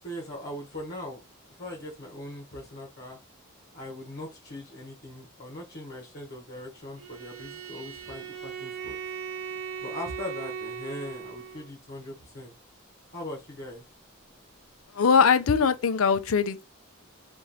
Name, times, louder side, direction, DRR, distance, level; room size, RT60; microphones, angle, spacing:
voice 1, 0.0-1.2 1.5-3.2 3.7-9.0 9.8-12.5 13.1-13.8, left 1 dB, 50° left, 1.2 m, -40 dB
Bowed string instrument, 7.0-11.7, right 7 dB, 75° right, 0.7 m, -38 dB
voice 2, 14.9-16.6, left 6 dB, 70° left, 0.5 m, -21 dB
3.1 x 2.6 x 4.0 m
head